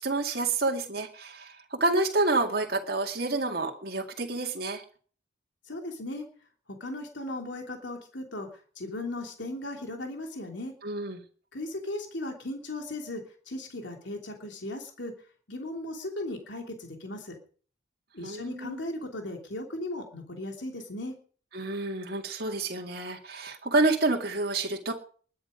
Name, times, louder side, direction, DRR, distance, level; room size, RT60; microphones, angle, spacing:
voice 1, 0.0-4.8 10.8-11.2 18.2-18.8 21.5-24.9, right 2 dB, 55° right, 0 dB, 2.2 m, -28 dB
voice 2, 5.7-6.3 6.7-10.7 11.5-15.1 15.5-17.4 18.1-21.2, left 1 dB, 75° left, 3 dB, 3.1 m, -37 dB
20.5 x 9.5 x 5.1 m, 0.43 s
head